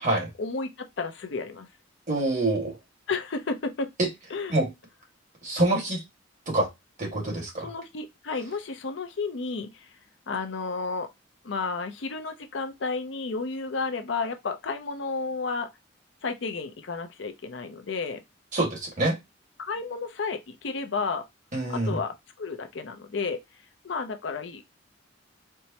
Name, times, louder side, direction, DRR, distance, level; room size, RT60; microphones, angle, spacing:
voice 1, 0.4-1.7 3.1-3.9 4.3-4.6 7.6-9.7 10.3-11.1 11.4-15.7 16.2-18.2 19.6-21.3 21.7-23.4 23.8-24.6, left 4 dB, 70° left, 0.6 m, -32 dB
voice 2, 2.1-2.8 4.0-4.1 4.5-4.7 5.4-6.0 6.4-6.7 7.0-7.7 18.5-19.2 21.5-22.0, right 2 dB, 40° right, 1.7 m, -26 dB
4.5 x 2.1 x 2.8 m
head